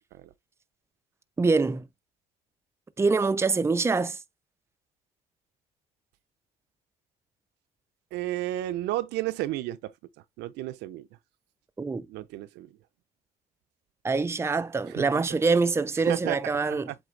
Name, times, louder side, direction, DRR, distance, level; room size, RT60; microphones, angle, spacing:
voice 1, 1.4-1.9 3.0-4.2 11.8-12.0 14.0-16.9, right 4 dB, 15° right, 0.6 m, -25 dB
voice 2, 8.1-9.9 10.4-11.1 12.1-12.7 14.9-15.0 16.0-17.0, right 15 dB, 90° right, 0.8 m, -32 dB
8.1 x 3.4 x 3.3 m
cardioid pair, 110°, 17 cm